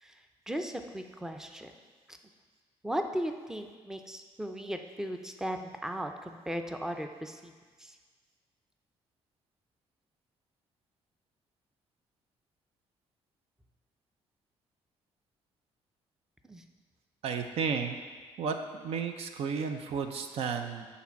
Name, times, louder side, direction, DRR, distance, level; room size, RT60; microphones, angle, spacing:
voice 1, 0.5-1.7 2.8-7.5 7.8-8.0 16.4-16.6, equal, 5° right, 5 dB, 0.5 m, -37 dB
voice 2, 17.2-18.0 18.4-18.6 18.8-20.9, right 6 dB, 70° right, 6 dB, 0.6 m, -32 dB
8.4 x 4.2 x 5.8 m, 1.5 s
cardioid pair, 130°, 11 cm